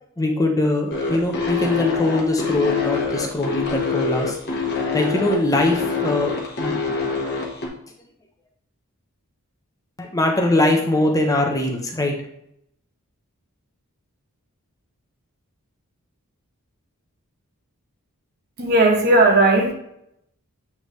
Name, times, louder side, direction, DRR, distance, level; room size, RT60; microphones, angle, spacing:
voice 1, 0.0-4.4 4.8-7.1 10.0-12.2, left 2 dB, 15° left, 2 dB, 0.9 m, -22 dB
sound 1, 0.9-7.7, left 5 dB, 50° left, 1.3 m, -25 dB
voice 2, 18.6-19.7, right 2 dB, 45° right, 1 dB, 1.3 m, -16 dB
8.1 x 3.6 x 3.2 m, 0.74 s
head